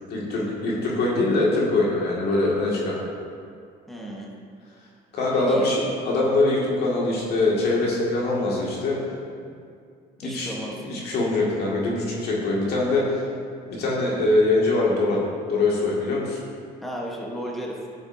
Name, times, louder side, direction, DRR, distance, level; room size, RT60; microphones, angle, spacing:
voice 1, 0.1-3.0 5.1-9.0 10.2-10.5 10.8-13.2 13.7-15.2 15.5-16.4, left 2 dB, 70° left, -4 dB, 2.2 m, -23 dB
voice 2, 3.9-4.3 5.3-5.7 10.2-10.9 16.8-17.8, equal, ahead, -3 dB, 1.3 m, -34 dB
11.5 x 7.0 x 2.8 m, 2.3 s
cardioid pair, 95°, 17 cm